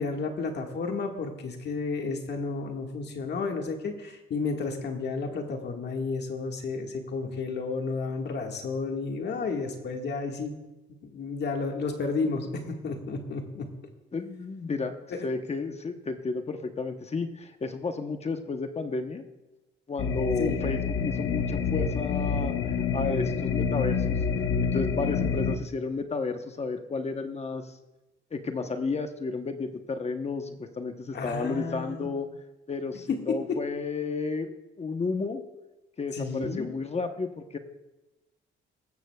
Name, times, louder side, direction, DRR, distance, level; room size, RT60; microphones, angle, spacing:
voice 1, 0.0-10.5 11.0-13.7 15.1-15.3 20.4-20.6 31.1-32.1 33.1-33.6 36.1-36.7, left 4 dB, 60° left, 3 dB, 1.7 m, -32 dB
voice 2, 14.1-14.9 15.2-19.2 19.9-24.2 24.6-27.7 28.3-32.3 32.7-35.4 36.0-37.6, left 4 dB, 30° left, 6 dB, 1.0 m, -32 dB
sound 1, 20.0-25.6, left 6 dB, 80° left, 0.9 m, -27 dB
19.0 x 14.0 x 2.3 m, 1.0 s
cardioid pair, 90°, 20 cm